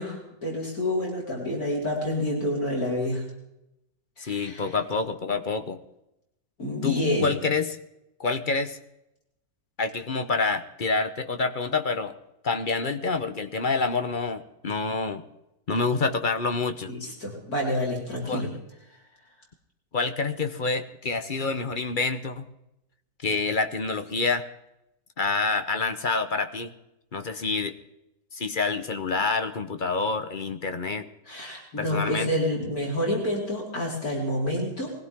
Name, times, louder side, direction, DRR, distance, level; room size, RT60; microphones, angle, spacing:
voice 1, 0.0-3.2 4.2-4.7 6.6-7.3 16.9-18.5 27.2-27.4 31.3-34.9, left 1 dB, 70° left, -2 dB, 5.0 m, -28 dB
voice 2, 4.2-5.8 6.8-7.8 8.2-8.8 9.8-12.1 12.4-15.2 15.7-16.9 18.3-18.5 19.9-22.5 23.2-24.4 25.2-26.7 27.1-27.8 28.3-31.1 31.8-32.3, left 4 dB, 35° left, 9 dB, 1.1 m, -27 dB
22.0 x 16.0 x 3.7 m, 0.88 s
omnidirectional pair, 1.6 m